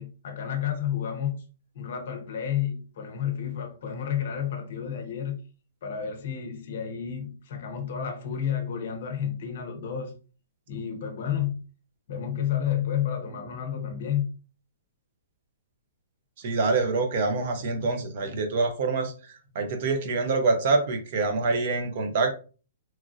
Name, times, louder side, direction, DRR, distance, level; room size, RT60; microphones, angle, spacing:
voice 1, 0.0-1.4 1.7-5.4 5.8-10.1 10.7-11.6 12.1-14.3, left 9 dB, 45° left, 0.6 m, -31 dB
voice 2, 16.4-19.1 19.6-22.3, right 3 dB, 40° right, 0.5 m, -25 dB
3.0 x 2.4 x 2.5 m
hypercardioid pair, 175°, 0 cm